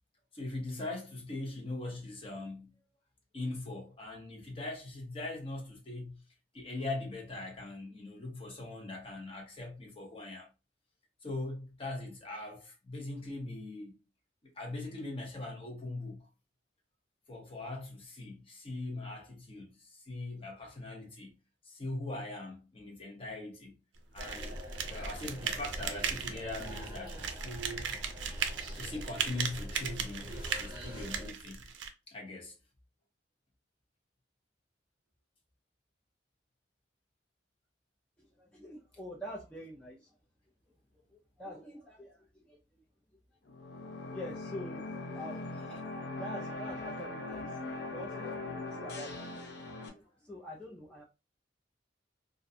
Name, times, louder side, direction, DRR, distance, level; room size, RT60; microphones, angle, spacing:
voice 1, 0.3-2.8 3.3-6.2 6.5-10.5 11.2-14.0 14.6-16.2 17.3-21.4 21.6-23.8 24.1-24.6 24.9-27.9 28.2-28.3 28.7-31.6 32.1-32.5, left 2 dB, 30° left, 0.8 m, -41 dB
sound 1, 24.2-31.3, equal, 25° right, 1.0 m, -45 dB
sound 2, 24.2-31.9, right 7 dB, 85° right, 0.4 m, -37 dB
voice 2, 38.4-40.1 41.4-42.6 44.0-45.8 46.1-49.6 49.9-51.0, equal, 10° left, 0.4 m, -46 dB
sound 3, 43.5-49.9, left 2 dB, 65° left, 0.5 m, -40 dB
2.4 x 2.1 x 2.6 m
head